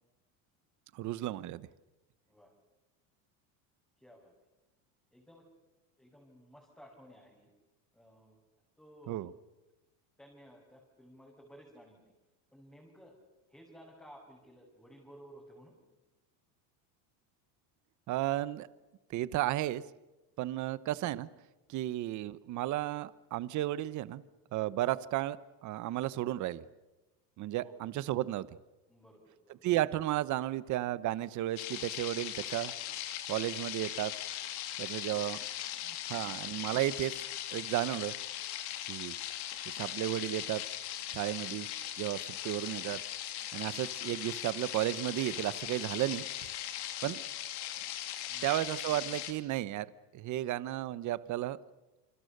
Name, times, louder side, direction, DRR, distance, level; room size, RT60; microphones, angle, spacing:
voice 1, 0.9-1.7 9.1-9.3 18.1-18.7 19.1-19.8 20.4-21.3 21.7-24.2 24.5-26.6 27.4-28.5 29.6-32.7 33.3-34.1 34.8-35.4 35.8-37.1 37.5-38.1 38.8-39.1 39.7-40.6 41.1-41.7 42.0-43.0 43.5-46.5 47.0-47.2 48.4-49.9 50.1-51.6, right 14 dB, 40° right, 17 dB, 1.0 m, -33 dB
voice 2, 4.0-4.3 5.1-5.5 6.0-7.5 7.9-9.3 10.2-12.0 12.5-13.2 13.5-15.8 27.6-27.7 28.9-29.6 35.0-36.3 42.3-42.6 48.3-48.6, equal, 5° left, -4 dB, 5.8 m, -57 dB
sound 1, 31.6-49.3, left 12 dB, 60° left, 3.0 m, -39 dB
28.5 x 25.5 x 6.7 m, 1.0 s
cardioid pair, 150°, 45 cm